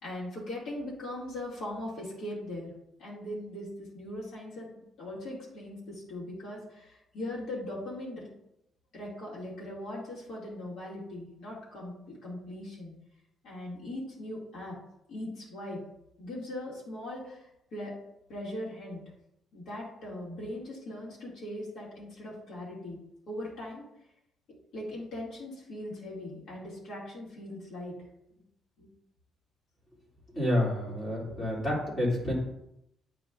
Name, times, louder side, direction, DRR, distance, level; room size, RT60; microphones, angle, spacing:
voice 1, 0.0-2.7 3.0-4.7 5.0-8.3 8.9-12.9 13.4-14.8 15.1-15.8 16.2-17.9 18.3-19.0 19.5-23.0 23.3-23.8 24.7-27.9 28.8-28.9 31.3-31.4, left 1 dB, 50° left, -6 dB, 2.3 m, -40 dB
voice 2, 30.3-32.3, left 1 dB, 20° left, -6 dB, 2.5 m, -29 dB
9.4 x 4.9 x 2.5 m, 0.82 s
cardioid pair, 180°, 0 cm